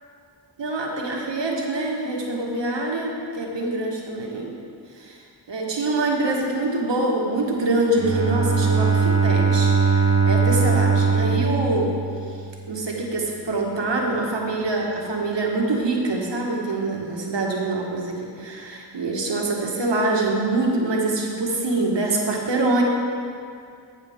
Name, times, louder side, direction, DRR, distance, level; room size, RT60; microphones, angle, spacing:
voice 1, 0.6-4.5 5.0-5.2 5.5-11.9 12.7-22.8, right 2 dB, 75° right, -1 dB, 1.6 m, -25 dB
Bowed string instrument, 8.0-12.8, right 5 dB, 35° right, 0.6 m, -20 dB
15.0 x 6.7 x 3.6 m, 2.3 s
wide cardioid pair, 70°, 44 cm